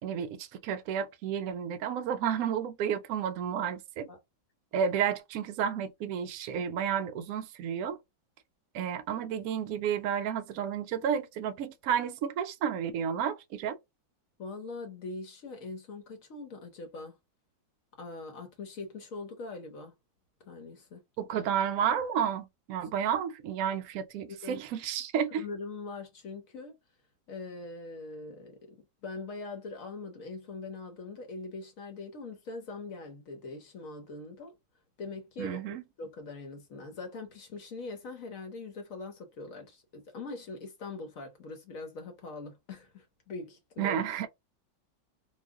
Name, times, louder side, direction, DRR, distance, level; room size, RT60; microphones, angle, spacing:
voice 1, 0.0-4.1 4.7-8.0 8.7-13.8 21.2-25.4 35.4-35.8 43.8-44.3, right 8 dB, 80° right, 0.7 m, -31 dB
voice 2, 14.4-17.1 18.0-19.9 20.4-21.0 24.3-24.6 25.4-26.7 27.3-28.8 29.0-34.6 35.0-44.0, left 3 dB, 60° left, 0.9 m, -42 dB
3.0 x 2.3 x 3.4 m
omnidirectional pair, 2.0 m